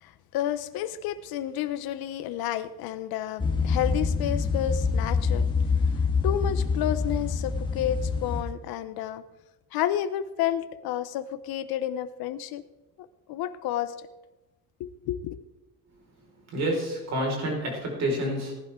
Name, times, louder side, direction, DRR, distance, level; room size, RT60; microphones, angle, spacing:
voice 1, 0.0-5.4 6.2-9.2 9.7-12.6 13.3-13.9 14.8-15.4, left 11 dB, 80° left, 12 dB, 1.0 m, -30 dB
sound 1, 3.4-8.4, left 5 dB, 15° left, 1.7 m, -26 dB
voice 2, 16.5-18.5, right 1 dB, 45° right, -1 dB, 5.2 m, -28 dB
18.5 x 11.5 x 3.8 m, 1.1 s
cardioid pair, 165°, 36 cm